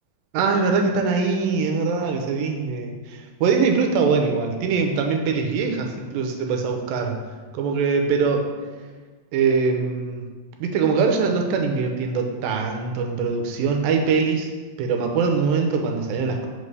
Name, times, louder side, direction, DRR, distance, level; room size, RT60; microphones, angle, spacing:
voice 1, 0.3-7.2 7.5-8.5 9.3-10.3 10.6-14.5 14.8-16.5, right 5 dB, 85° right, 3 dB, 2.4 m, -22 dB
5.6 x 3.2 x 5.3 m, 1.4 s
omnidirectional pair, 4.1 m